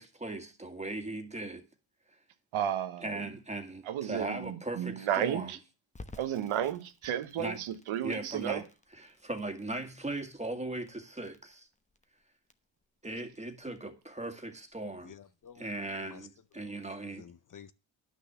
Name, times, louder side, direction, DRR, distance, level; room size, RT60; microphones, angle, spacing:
voice 1, 0.0-1.6 3.0-5.5 7.4-7.6 8.0-8.6 9.0-11.7 13.0-15.2 15.6-17.2, right 2 dB, 15° right, 1.9 m, -38 dB
voice 2, 2.5-3.3 3.8-5.6 6.2-8.6, right 10 dB, 85° right, 1.1 m, -33 dB
Crackle, 5.9-16.7, left 2 dB, 15° left, 1.0 m, -56 dB
voice 3, 15.0-16.3 16.6-16.8 17.2-17.7, left 8 dB, 45° left, 0.6 m, -52 dB
10.5 x 6.2 x 6.8 m
cardioid pair, 100°, 47 cm